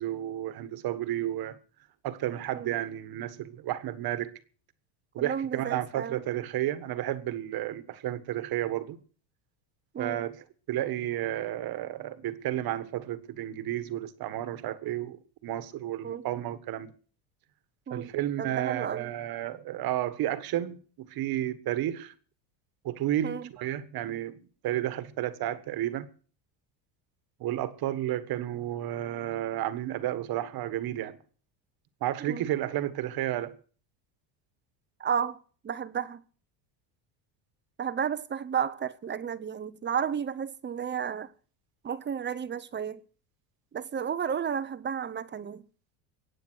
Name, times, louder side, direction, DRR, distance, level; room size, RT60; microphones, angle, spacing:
voice 1, 0.0-1.6 2.0-4.3 5.1-9.0 10.0-10.4 10.7-15.2 15.4-16.9 17.9-22.1 22.8-26.1 27.4-31.2 32.0-33.5, right 13 dB, 50° right, 1.6 m, -32 dB
voice 2, 5.2-6.2 9.9-10.2 16.0-16.3 17.9-18.1 18.4-19.1 23.2-23.5 32.2-32.5 35.0-36.2 37.8-41.3 41.8-43.0 43.7-45.7, right 7 dB, 25° right, 0.8 m, -32 dB
22.5 x 9.0 x 6.3 m
supercardioid pair, 115°, 47 cm